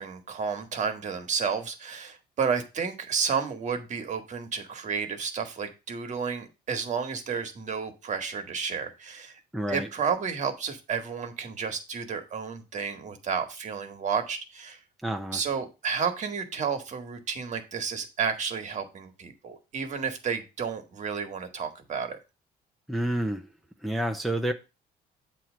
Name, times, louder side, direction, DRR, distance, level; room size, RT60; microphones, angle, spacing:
voice 1, 0.0-9.4 9.7-14.8 15.3-22.2, right 6 dB, 45° right, 1.4 m, -31 dB
voice 2, 9.5-9.9 15.0-15.4 22.9-23.5 23.8-24.5, right 1 dB, ahead, 0.6 m, -29 dB
7.8 x 3.0 x 6.1 m
cardioid pair, 110°, 17 cm